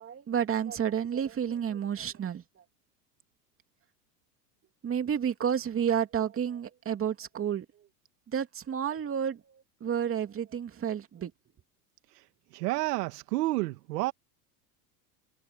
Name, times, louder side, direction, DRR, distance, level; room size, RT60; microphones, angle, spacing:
voice 1, 0.0-2.4 4.8-7.6 8.3-9.4 9.8-11.3, right 8 dB, 25° right, 2.8 m, -30 dB
voice 2, 12.5-14.1, right 20 dB, 70° right, 1.9 m, -30 dB
supercardioid pair, 115°, 49 cm